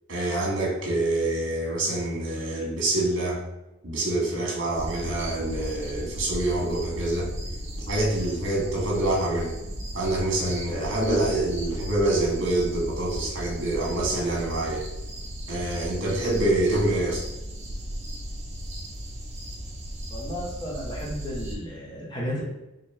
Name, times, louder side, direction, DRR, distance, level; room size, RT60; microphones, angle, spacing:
voice 1, 0.1-3.4 3.8-7.3 7.9-9.5 9.9-14.8 15.5-17.2, right 1 dB, 60° right, -3 dB, 1.2 m, -26 dB
sound 1, 4.7-21.6, equal, 30° right, 0.5 m, -36 dB
voice 2, 20.1-22.4, equal, 20° left, -4 dB, 0.9 m, -33 dB
4.1 x 2.5 x 3.2 m, 0.98 s
head